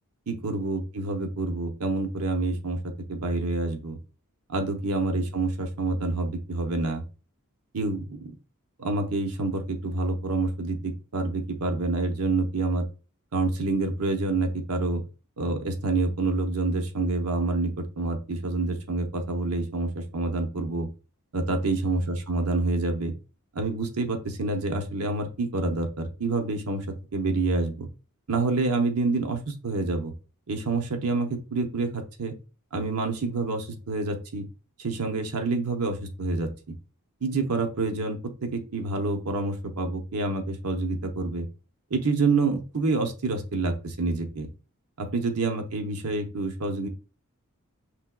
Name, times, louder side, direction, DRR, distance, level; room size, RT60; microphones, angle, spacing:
voice 1, 0.3-2.8 3.1-4.0 4.5-7.0 7.7-8.3 8.8-12.9 13.3-15.0 15.4-20.9 21.3-23.1 23.5-26.9 27.1-27.9 28.3-30.1 30.5-32.3 32.7-34.5 34.8-36.5 37.2-41.5 41.9-44.5 45.0-46.9, right 3 dB, 85° right, 5 dB, 0.9 m, -27 dB
6.2 x 3.4 x 2.2 m, 0.34 s
head